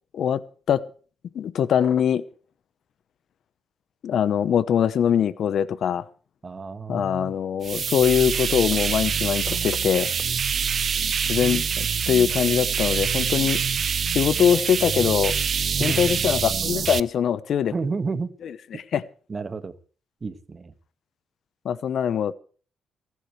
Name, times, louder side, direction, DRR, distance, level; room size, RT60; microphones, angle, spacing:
voice 1, 1.3-2.2 4.0-6.0 6.9-10.1 11.3-13.6 14.1-15.3 15.8-17.7 18.7-19.0 21.6-22.3, left 8 dB, 65° left, 17 dB, 1.0 m, -22 dB
voice 2, 6.4-7.4 15.8-16.4 17.7-18.4 19.3-19.8 20.2-20.7, right 4 dB, 35° right, 12 dB, 1.8 m, -31 dB
sound 1, 7.6-17.0, right 7 dB, 55° right, 0.7 m, -25 dB
29.5 x 11.0 x 3.3 m, 0.41 s
cardioid pair, 80°, 0 cm